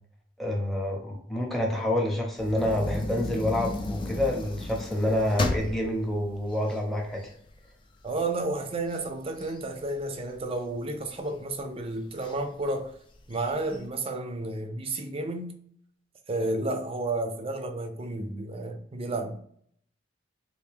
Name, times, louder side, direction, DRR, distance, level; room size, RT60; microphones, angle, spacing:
voice 1, 0.4-7.3, left 1 dB, ahead, 0.8 m, -28 dB
sound 1, 2.4-7.6 8.1-8.2 8.5-10.5 11.1-11.6 12.2-12.3 12.6-12.7 13.2-13.8, left 2 dB, 30° left, 0.4 m, -34 dB
voice 2, 8.0-12.9 13.3-15.6 16.3-19.4, right 2 dB, 30° right, 0.5 m, -31 dB
3.4 x 2.6 x 3.4 m
head